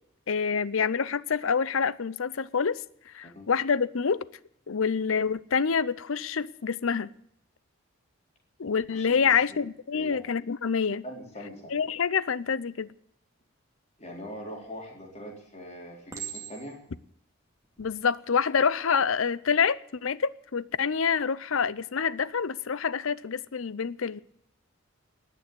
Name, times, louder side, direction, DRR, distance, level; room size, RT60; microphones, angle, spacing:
voice 1, 0.3-2.8 3.1-4.2 4.7-7.1 8.6-11.0 11.7-12.9 17.8-24.2, left 6 dB, 70° left, 0.6 m, -27 dB
voice 2, 8.9-9.3 9.9-10.2 11.0-11.8 14.0-16.8, equal, 30° left, 4.1 m, -42 dB
Chink clink, 14.6-15.1 16.1-16.9 17.6-17.9, right 9 dB, 15° right, 2.4 m, -40 dB
19.5 x 7.0 x 9.3 m
head